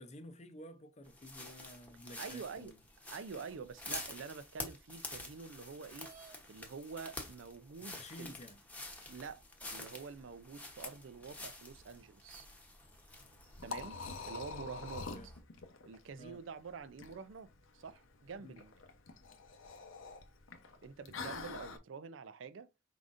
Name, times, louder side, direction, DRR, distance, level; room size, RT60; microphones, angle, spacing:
voice 1, 0.0-2.8 7.8-8.6 14.9-15.3 16.2-16.4 18.4-18.6, left 1 dB, 35° left, 0.6 m, -52 dB
sound 1, 1.0-15.4, left 2 dB, 10° left, 1.0 m, -49 dB
voice 2, 2.2-2.7 3.1-6.1 6.5-8.3 9.1-9.4 9.7-12.5 13.6-14.0 14.3-15.3 15.9-17.5 17.7-18.7 20.8-22.7, right 5 dB, 70° right, 0.4 m, -47 dB
sound 2, 6.0-6.4 7.4-7.5 8.1-8.2 8.8-9.5, right 6 dB, 45° right, 0.8 m, -57 dB
Liquid, 13.1-21.8, left 4 dB, 85° left, 0.8 m, -46 dB
4.9 x 3.8 x 2.5 m
head